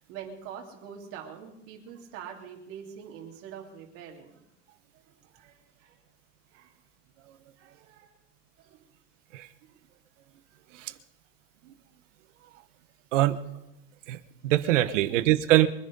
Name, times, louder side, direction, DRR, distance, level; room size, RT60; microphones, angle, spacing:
voice 1, 0.0-4.4 5.2-6.0 6.5-6.7 7.6-8.2 8.6-8.9 14.8-15.3, right 8 dB, 35° right, 0 dB, 3.2 m, -44 dB
voice 2, 14.1-15.7, right 15 dB, 80° right, 13 dB, 1.3 m, -23 dB
23.5 x 10.5 x 5.4 m, 0.86 s
supercardioid pair, 175°, 37 cm